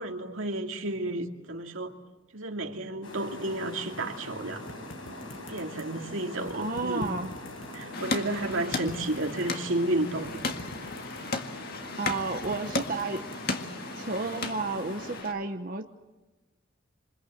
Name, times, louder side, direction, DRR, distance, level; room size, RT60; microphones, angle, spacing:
voice 1, 0.0-1.9 2.3-4.7 5.4-7.2 7.7-10.4, right 1 dB, 80° right, 3 dB, 2.6 m, -32 dB
sound 1, 3.0-15.2, left 1 dB, 85° left, 7.1 m, -42 dB
sound 2, 4.7-6.0 6.4-7.8 8.2-9.7 10.2-11.5 11.9-13.7, left 1 dB, 70° left, 2.1 m, -45 dB
voice 2, 6.6-7.3 12.0-13.2 14.0-15.9, right 3 dB, 40° right, 5 dB, 1.0 m, -32 dB
sound 3, 7.9-15.3, left 3 dB, 50° left, 1.9 m, -36 dB
27.5 x 26.0 x 8.0 m, 1.1 s
head